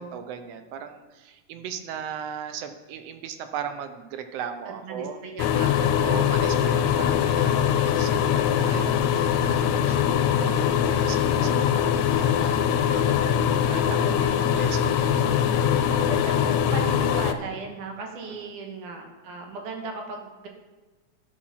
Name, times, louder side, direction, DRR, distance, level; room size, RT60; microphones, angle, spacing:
voice 1, 0.0-5.2 6.0-8.9 9.5-13.1 13.7-15.6 18.2-18.5, right 8 dB, 70° right, 8 dB, 1.6 m, -38 dB
voice 2, 4.7-6.3 14.1-14.4 16.1-20.5, right 3 dB, 90° right, 2 dB, 2.8 m, -36 dB
sound 1, 5.4-17.3, left 9 dB, 80° left, 1.8 m, -22 dB
12.5 x 4.9 x 5.7 m, 1.2 s
omnidirectional pair, 3.5 m